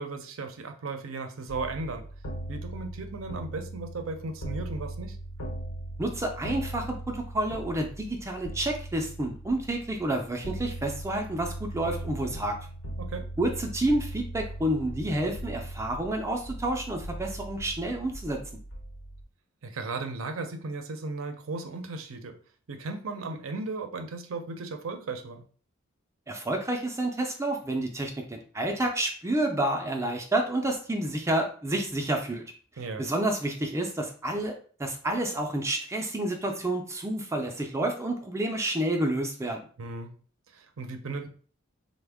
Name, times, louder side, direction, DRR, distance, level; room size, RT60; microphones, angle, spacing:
voice 1, 0.0-2.0 2.5-5.2 13.0-13.3 19.6-22.4 22.7-25.4 32.8-33.1 39.8-40.1 40.5-41.3, right 3 dB, 75° right, 6 dB, 0.5 m, -36 dB
sound 1, 1.5-19.2, right 1 dB, 90° left, 0.9 m, -39 dB
voice 2, 6.0-12.6 13.4-18.4 26.3-32.4 32.8-34.5 34.8-39.7, right 1 dB, 15° right, 3 dB, 0.4 m, -29 dB
3.4 x 2.1 x 3.4 m, 0.42 s
head